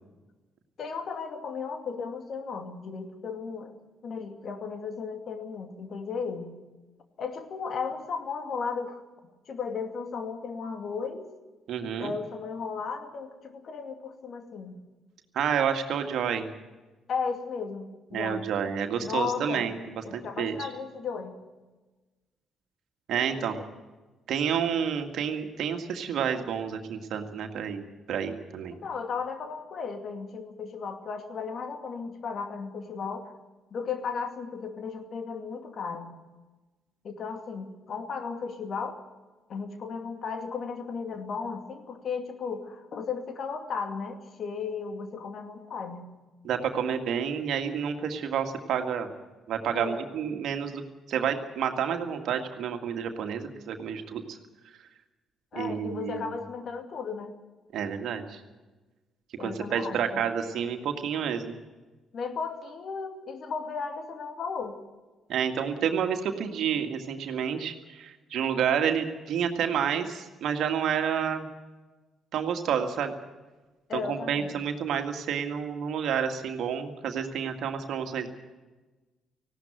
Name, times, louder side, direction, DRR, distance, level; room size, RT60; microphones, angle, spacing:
voice 1, 0.8-3.7 4.0-6.5 7.2-9.0 9.5-11.3 12.0-14.8 17.1-18.5 19.0-19.7 20.0-21.4 23.1-23.5 28.7-33.3 33.7-36.1 37.0-39.0 39.5-46.0 49.7-50.0 55.5-57.3 59.4-60.2 62.1-64.8 73.9-74.6, left 5 dB, 55° left, 6 dB, 2.5 m, -35 dB
voice 2, 11.7-12.1 15.3-16.5 18.1-19.8 20.1-20.7 23.1-23.6 24.3-28.8 46.4-49.1 49.5-50.8 51.1-54.4 55.5-56.3 57.7-58.4 59.4-61.6 65.3-71.5 72.3-73.1 73.9-78.3, right 7 dB, 65° right, 6 dB, 2.0 m, -29 dB
19.0 x 16.5 x 9.1 m, 1.2 s
hypercardioid pair, 45°, 0 cm